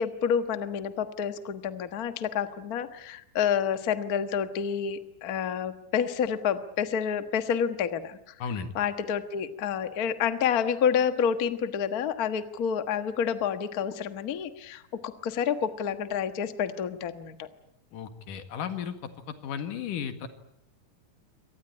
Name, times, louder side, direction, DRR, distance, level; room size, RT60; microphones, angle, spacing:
voice 1, 0.0-8.3 8.7-17.5, left 7 dB, 50° left, 10 dB, 1.1 m, -29 dB
voice 2, 8.4-8.7 17.9-19.0 19.3-20.3, left 7 dB, 90° left, 9 dB, 3.4 m, -34 dB
25.0 x 18.5 x 9.8 m, 0.77 s
omnidirectional pair, 3.6 m